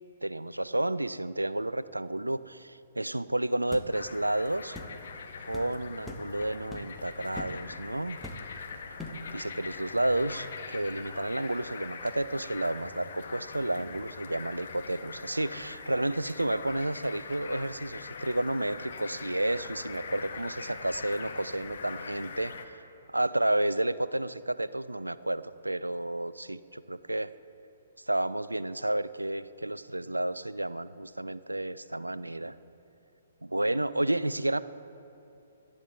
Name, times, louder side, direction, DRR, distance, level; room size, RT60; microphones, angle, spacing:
voice 1, 0.2-4.8 5.5-8.2 9.3-22.8 23.1-27.3 28.1-32.6 33.4-34.6, right 1 dB, 80° right, 16 dB, 0.3 m, -31 dB
sound 1, 3.7-3.9 4.7-4.9 5.5-5.7 6.1-6.3 6.7-7.0 7.4-7.6 8.2-8.6 9.0-9.3, left 1 dB, 5° left, 1.0 m, -41 dB
sound 2, 3.9-22.7, left 5 dB, 50° left, 0.9 m, -42 dB
17.5 x 11.5 x 3.4 m, 2.7 s
figure-of-eight pair, 125°, 0 cm